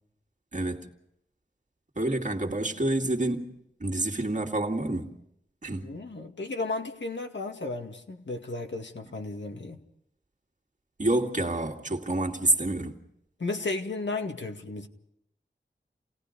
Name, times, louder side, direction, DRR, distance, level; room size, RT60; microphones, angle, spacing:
voice 1, 0.5-0.9 2.0-3.5 3.8-5.2 5.6-5.9 11.0-13.0, right 2 dB, 40° right, 2.2 m, -28 dB
voice 2, 5.8-9.8 13.4-14.9, left 3 dB, 70° left, 2.1 m, -34 dB
29.5 x 18.0 x 5.2 m
wide cardioid pair, 85°, 20 cm